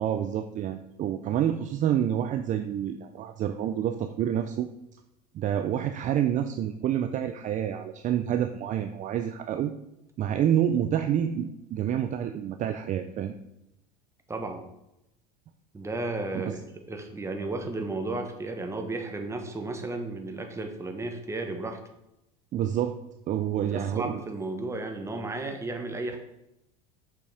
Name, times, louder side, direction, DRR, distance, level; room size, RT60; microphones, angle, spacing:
voice 1, 0.0-4.7 5.3-9.7 10.2-13.3 16.3-16.6 22.5-23.0 23.3-24.2, right 10 dB, 40° right, 7 dB, 0.5 m, -28 dB
voice 2, 14.3-14.6 15.7-16.6 16.9-21.8 23.6-26.2, right 2 dB, 15° right, 5 dB, 1.3 m, -33 dB
6.7 x 6.0 x 5.0 m, 0.87 s
supercardioid pair, 105°, 20 cm